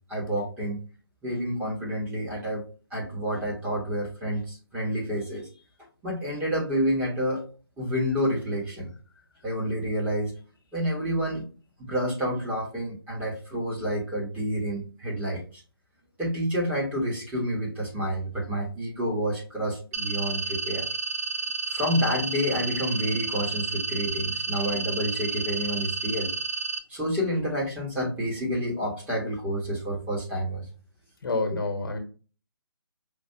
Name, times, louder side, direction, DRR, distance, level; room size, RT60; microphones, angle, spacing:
voice 1, 0.1-0.9 1.2-2.6 2.9-5.5 6.0-7.4 7.8-8.9 9.4-10.3 10.7-11.5 11.8-15.6 16.2-20.9 21.7-26.3 26.9-30.7 31.5-31.6, equal, 10° right, 1.4 m, -29 dB
sound 1, 19.9-26.8, right 3 dB, 40° right, 0.4 m, -31 dB
voice 2, 31.2-32.0, left 3 dB, 60° left, 1.2 m, -28 dB
5.1 x 2.6 x 2.7 m
figure-of-eight pair, 150°, 13 cm